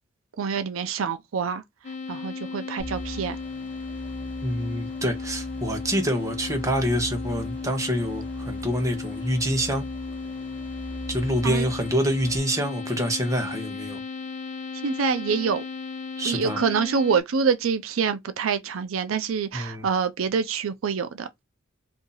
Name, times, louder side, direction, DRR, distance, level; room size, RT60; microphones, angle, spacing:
voice 1, 0.4-1.6 2.1-3.4 11.4-11.7 14.8-15.6 16.2-21.3, right 6 dB, 90° right, 0.5 m, -26 dB
sound 1, 1.8-17.2, left 4 dB, 35° left, 0.9 m, -35 dB
sound 2, 2.8-12.4, right 1 dB, 10° left, 1.5 m, -40 dB
voice 2, 4.4-9.9 11.1-14.0 16.2-16.6 19.5-19.9, equal, 15° right, 0.9 m, -26 dB
2.7 x 2.6 x 3.8 m
head